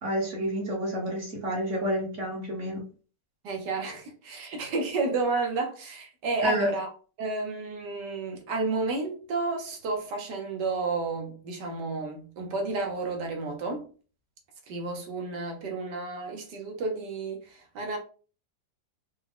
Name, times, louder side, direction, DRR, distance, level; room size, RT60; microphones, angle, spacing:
voice 1, 0.0-2.8 6.4-6.7, equal, 45° right, 1.5 m, -29 dB
voice 2, 3.4-6.9 7.2-13.8 14.7-18.0, right 3 dB, 70° right, 1.5 m, -31 dB
4.8 x 2.2 x 3.5 m
omnidirectional pair, 2.0 m